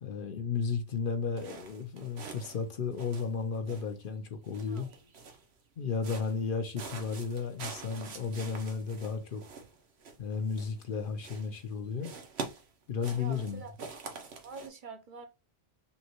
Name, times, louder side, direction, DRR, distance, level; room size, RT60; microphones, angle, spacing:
voice 1, 0.0-4.9 5.8-9.4 10.2-12.1 12.9-13.6, left 5 dB, 60° left, 0.8 m, -34 dB
sound 1, 1.4-2.7 2.9-4.1 4.4-5.5 6.0-6.5 6.7-10.9 11.2-11.7 12.0-14.7, right 4 dB, 80° right, 1.0 m, -45 dB
voice 2, 4.7-5.1 13.2-13.8 14.4-15.3, right 4 dB, 55° right, 0.7 m, -46 dB
5.4 x 2.2 x 2.9 m
omnidirectional pair, 1.1 m